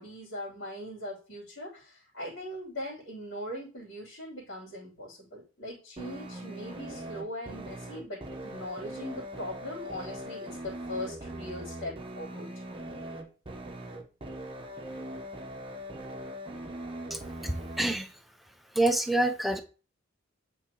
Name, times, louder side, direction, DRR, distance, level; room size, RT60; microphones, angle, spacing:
voice 1, 0.0-12.5, left 1 dB, 70° left, -7 dB, 2.9 m, -40 dB
sound 1, 6.0-18.0, right 1 dB, 25° right, 0.8 m, -41 dB
voice 2, 17.1-18.1 18.7-19.6, right 1 dB, ahead, 5 dB, 0.5 m, -27 dB
8.4 x 3.9 x 2.9 m, 0.35 s
head